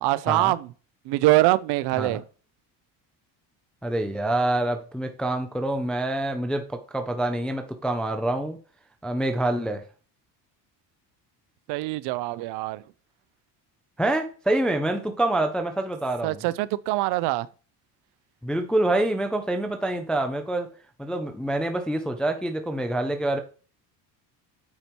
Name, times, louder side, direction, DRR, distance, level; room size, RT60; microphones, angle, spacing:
voice 1, 0.0-0.7 1.1-2.2 11.7-12.8 16.2-17.5, right 18 dB, 70° right, 0.6 m, -23 dB
voice 2, 3.8-8.6 9.0-9.8 14.0-16.4 18.4-20.7 21.0-23.4, right 1 dB, ahead, 0.3 m, -26 dB
8.6 x 4.4 x 4.5 m
cardioid pair, 175°, 41 cm